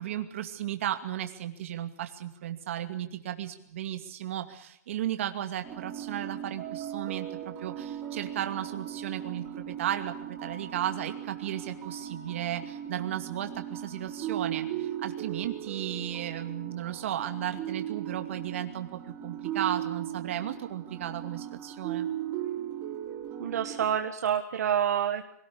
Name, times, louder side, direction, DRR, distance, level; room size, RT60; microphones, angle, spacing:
voice 1, 0.0-22.1, right 11 dB, 45° right, 7 dB, 2.5 m, -35 dB
sound 1, 5.6-23.8, right 10 dB, 20° right, 4.3 m, -37 dB
voice 2, 23.4-25.3, right 9 dB, 65° right, 5 dB, 1.8 m, -28 dB
25.5 x 18.0 x 8.5 m, 0.71 s
hypercardioid pair, 175°, 9 cm